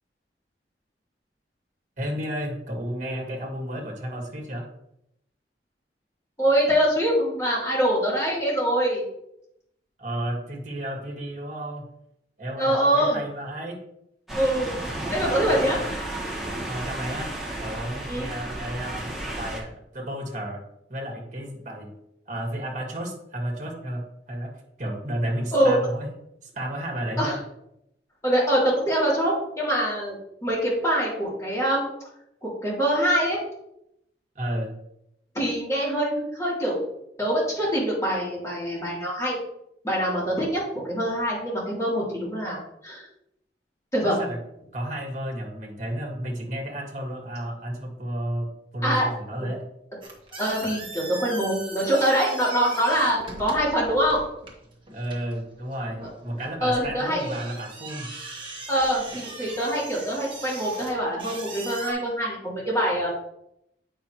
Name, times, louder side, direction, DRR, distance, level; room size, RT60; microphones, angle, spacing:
voice 1, 2.0-4.6 10.0-11.8 12.4-13.8 16.7-17.3 17.6-20.6 20.9-21.9 22.2-26.1 26.4-27.4 34.3-34.7 44.0-44.4 44.7-49.7 54.9-58.1, right 1 dB, 45° right, 0 dB, 1.7 m, -32 dB
voice 2, 6.4-9.0 12.6-13.2 14.3-14.7 15.1-15.8 18.1-18.3 25.5-25.8 27.2-27.4 28.2-30.2 30.4-31.8 32.4-33.4 35.3-36.9 37.2-39.4 39.8-43.0 43.9-44.2 48.8-49.0 50.4-54.2 56.6-57.3 58.7-63.1, equal, 15° left, -7 dB, 3.0 m, -24 dB
sound 1, 14.3-19.6, right 1 dB, ahead, 1.5 m, -33 dB
sound 2, 50.0-61.9, right 3 dB, 30° right, 1.4 m, -40 dB
8.4 x 5.5 x 3.0 m, 0.79 s
head